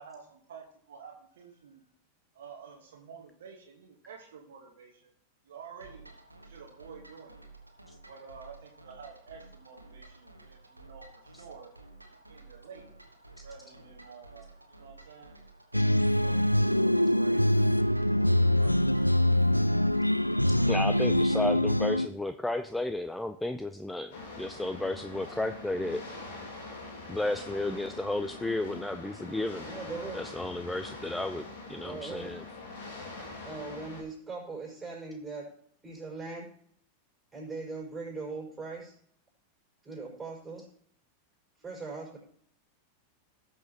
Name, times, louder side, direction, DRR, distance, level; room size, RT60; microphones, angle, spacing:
voice 1, 0.0-1.8 2.3-5.1 5.4-6.1 6.4-7.4 8.1-11.7 12.1-12.9 13.4-15.4 16.0-17.4 17.7-19.3, right 6 dB, 60° right, 2 dB, 1.4 m, -50 dB
sound 1, 5.8-21.7, right 2 dB, 85° right, 1.4 m, -53 dB
sound 2, 15.7-22.1, left 1 dB, 90° left, 0.3 m, -24 dB
voice 2, 20.7-26.0 27.1-29.6 30.1-31.4 31.7-32.4, left 2 dB, 5° left, 9 dB, 0.4 m, -33 dB
sound 3, 24.1-34.0, left 3 dB, 55° left, 2.3 m, -43 dB
voice 3, 29.6-30.2 31.7-32.3 33.4-35.5 35.8-36.5 37.3-38.9 39.8-40.7 41.6-42.2, right 3 dB, 15° right, -2 dB, 5.1 m, -40 dB
18.0 x 6.4 x 2.9 m, 0.64 s
figure-of-eight pair, 90°, 0 cm